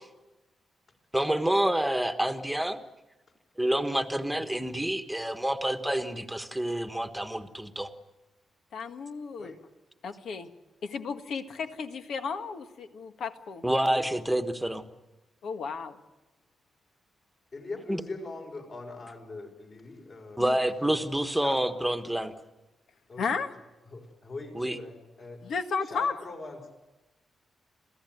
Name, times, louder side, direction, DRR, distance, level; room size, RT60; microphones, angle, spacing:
voice 1, 1.1-2.8 3.6-7.9 13.6-14.8 17.9-18.0 20.4-22.3 24.5-24.8, right 1 dB, 5° right, 7 dB, 1.4 m, -28 dB
voice 2, 8.7-9.5 10.0-10.5 10.8-13.6 15.4-16.0 20.4-20.6 23.2-23.5 25.4-26.1, left 5 dB, 75° left, 7 dB, 1.7 m, -33 dB
voice 3, 17.5-21.6 23.1-23.3 23.9-25.4 25.8-26.7, left 3 dB, 45° left, 3 dB, 5.8 m, -42 dB
27.5 x 16.0 x 9.4 m, 1.1 s
wide cardioid pair, 150°, 0 cm